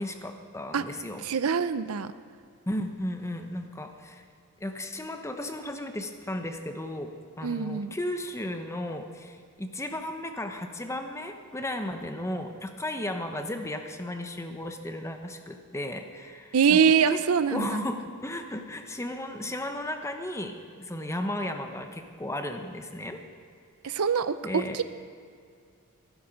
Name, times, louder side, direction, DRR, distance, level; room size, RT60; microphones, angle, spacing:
voice 1, 0.0-1.2 2.7-4.2 4.6-7.1 7.4-17.2 17.5-23.2 23.8-24.0 24.4-24.8, left 1 dB, 15° left, 6 dB, 0.9 m, -35 dB
voice 2, 1.2-2.1 7.4-7.9 16.5-17.8 23.8-24.8, right 6 dB, 80° right, 13 dB, 0.5 m, -24 dB
14.5 x 12.0 x 5.1 m, 2.2 s
head